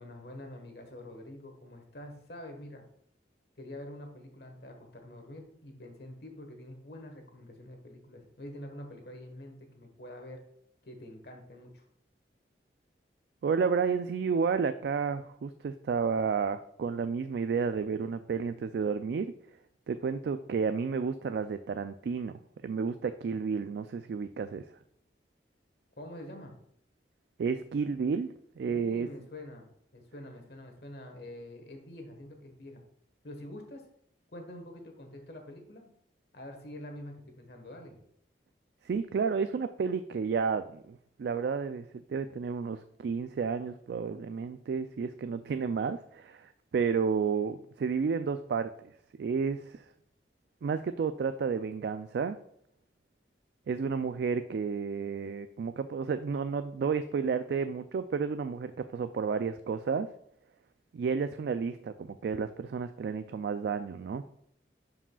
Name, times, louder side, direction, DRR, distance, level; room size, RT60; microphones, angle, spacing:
voice 1, 0.0-2.8 3.6-10.4 10.8-11.8 26.0-26.5 28.6-32.8 33.2-33.9 34.3-35.9 36.3-38.0, left 1 dB, 65° left, 4 dB, 1.3 m, -46 dB
voice 2, 13.4-19.3 19.9-24.6 27.4-29.1 38.8-48.7 49.2-49.8 50.6-52.4 53.7-60.1 60.9-64.2, right 5 dB, 65° right, 10 dB, 0.3 m, -31 dB
11.0 x 4.9 x 2.3 m, 0.69 s
head